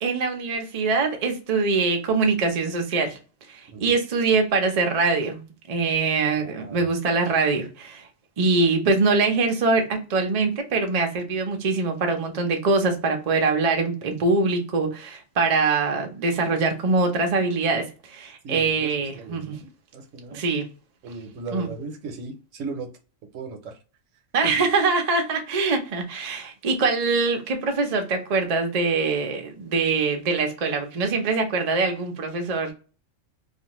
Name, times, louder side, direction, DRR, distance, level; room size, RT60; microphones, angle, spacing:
voice 1, 0.0-3.2 3.5-8.0 8.4-19.6 20.3-20.7 21.5-21.7 24.3-32.7, right 4 dB, 50° right, 0.4 m, -23 dB
voice 2, 6.4-6.9 18.4-20.4 21.0-22.9 23.3-23.8, right 4 dB, 80° right, 1.0 m, -37 dB
2.5 x 2.4 x 2.9 m
omnidirectional pair, 1.3 m